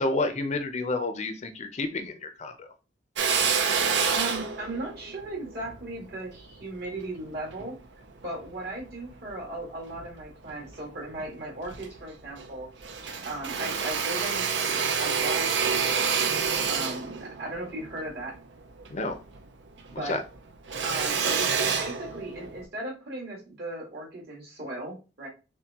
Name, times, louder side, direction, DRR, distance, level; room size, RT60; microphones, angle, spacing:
voice 1, 0.0-2.7 18.9-19.2 19.9-20.2, left 2 dB, 40° left, 8 dB, 0.5 m, -30 dB
Drill, 3.2-7.7 8.3-9.4 9.9-10.8 11.2-11.3 11.5-12.5 12.8-19.5 19.8-22.6, right 6 dB, 80° right, 0.6 m, -28 dB
voice 2, 4.1-7.8 8.2-12.7 13.2-16.1 16.7-18.3 20.0-20.1 20.8-25.3, right 2 dB, 60° right, -3 dB, 2.0 m, -37 dB
5.7 x 2.2 x 2.8 m, 0.31 s
head